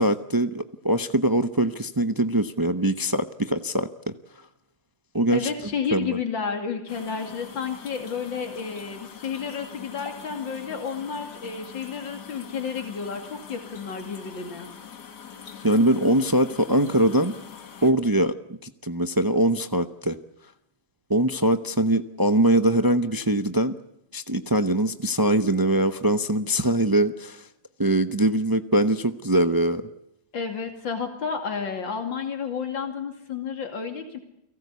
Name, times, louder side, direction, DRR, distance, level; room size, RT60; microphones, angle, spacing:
voice 1, 0.0-4.1 5.1-5.5 5.9-6.2 15.6-17.3 17.8-18.3 18.6-20.2 21.1-23.7 24.1-27.5 27.8-29.8, right 1 dB, 35° right, 10 dB, 0.3 m, -22 dB
voice 2, 5.3-14.7 30.3-34.2, left 6 dB, 90° left, 5 dB, 3.2 m, -31 dB
sound 1, 6.9-17.9, left 7 dB, 65° left, 2.3 m, -43 dB
30.0 x 18.5 x 8.3 m, 0.81 s
omnidirectional pair, 2.0 m